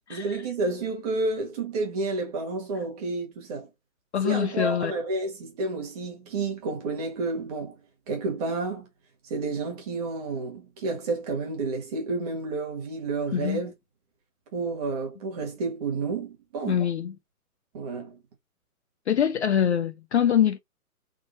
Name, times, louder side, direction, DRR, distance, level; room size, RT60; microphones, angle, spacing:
voice 1, 0.1-3.7 4.2-7.7 8.1-8.8 9.3-13.7 14.5-16.8 17.7-18.2, right 3 dB, 25° right, 1.4 m, -30 dB
voice 2, 4.1-4.9 13.3-13.6 16.7-17.2 19.1-20.6, left 9 dB, 50° left, 0.5 m, -24 dB
3.7 x 2.5 x 3.9 m
hypercardioid pair, 155°, 45 cm